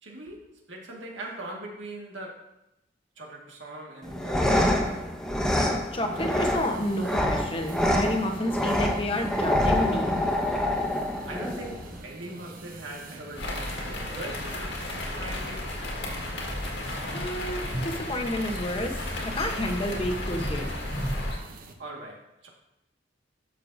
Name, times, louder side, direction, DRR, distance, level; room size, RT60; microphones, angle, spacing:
voice 1, 0.0-2.5 3.2-5.1 11.2-16.1 21.5-22.5, right 1 dB, 80° right, -1 dB, 1.9 m, -41 dB
sound 1, 4.0-12.0, left 1 dB, 5° left, 0.8 m, -26 dB
voice 2, 5.9-10.2 17.1-19.0 19.2-20.7, left 1 dB, 30° left, 3 dB, 1.0 m, -30 dB
sound 2, 6.1-21.7, right 2 dB, 50° right, 0.9 m, -45 dB
sound 3, 13.4-21.4, left 1 dB, 65° left, 1.9 m, -33 dB
11.5 x 6.7 x 2.7 m, 0.84 s
head